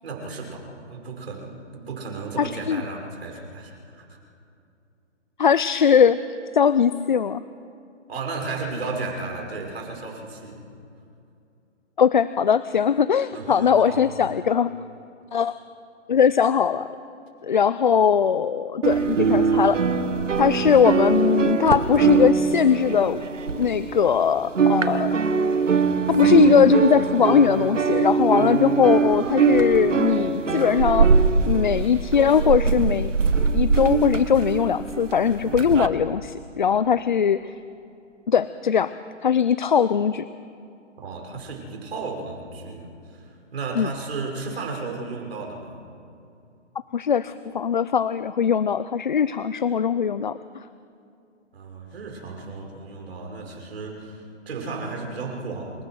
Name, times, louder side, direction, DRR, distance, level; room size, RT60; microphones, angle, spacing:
voice 1, 0.0-4.2 8.1-10.6 13.3-14.0 41.0-45.8 51.5-55.8, right 3 dB, 55° right, 1 dB, 6.1 m, -34 dB
voice 2, 2.4-2.8 5.4-6.2 6.5-7.4 12.0-14.7 15.3-15.6 16.1-16.9 17.4-19.8 20.4-23.2 23.5-25.2 26.1-31.2 31.5-33.1 33.5-37.5 38.3-38.9 39.2-40.3 43.8-43.9 46.9-50.4, left 7 dB, 40° left, 15 dB, 0.5 m, -20 dB
sound 1, 18.8-24.2 24.4-35.9, right 5 dB, 85° right, 1.8 m, -22 dB
27.5 x 16.0 x 6.3 m, 2.6 s
hypercardioid pair, 165°, 37 cm